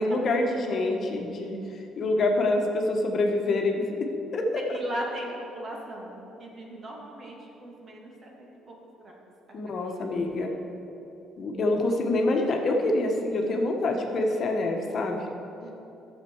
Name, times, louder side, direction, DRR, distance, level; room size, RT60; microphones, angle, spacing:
voice 1, 0.0-1.6 2.0-3.8 4.3-4.6 9.5-10.5 11.4-15.2, left 2 dB, 50° left, 1 dB, 1.2 m, -26 dB
voice 2, 4.7-8.8 9.0-9.1 15.6-15.7, right 1 dB, 40° right, -2 dB, 2.1 m, -38 dB
11.5 x 7.5 x 4.7 m, 2.9 s
cardioid pair, 95°, 0 cm